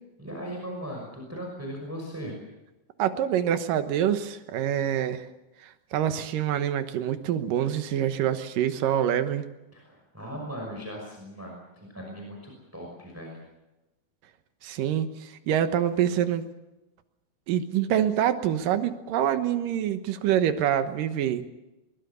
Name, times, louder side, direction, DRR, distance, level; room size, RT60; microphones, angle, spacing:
voice 1, 0.2-2.3 9.7-13.4, equal, 5° right, 0 dB, 5.4 m, -38 dB
voice 2, 3.0-5.3 5.6-9.5 14.6-16.5 17.5-21.5, right 10 dB, 80° right, 9 dB, 2.9 m, -26 dB
23.0 x 21.0 x 7.0 m, 1.0 s
omnidirectional pair, 3.9 m